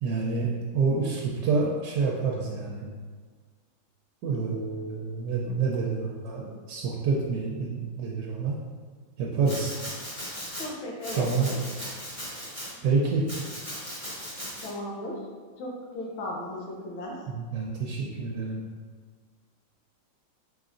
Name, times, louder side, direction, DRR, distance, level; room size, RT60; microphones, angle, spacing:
voice 1, 0.0-2.9 4.2-8.6 9.2-9.7 11.2-11.5 12.8-13.3 17.3-18.6, right 4 dB, 70° right, -3 dB, 1.1 m, -28 dB
Domestic sounds home sounds, 9.4-10.7 11.0-12.7 13.3-14.7, equal, 25° left, 0.9 m, -38 dB
voice 2, 10.6-11.6 14.6-15.3 15.6-17.3, left 1 dB, 85° left, -1 dB, 1.7 m, -36 dB
5.1 x 4.0 x 2.5 m, 1.5 s
omnidirectional pair, 2.2 m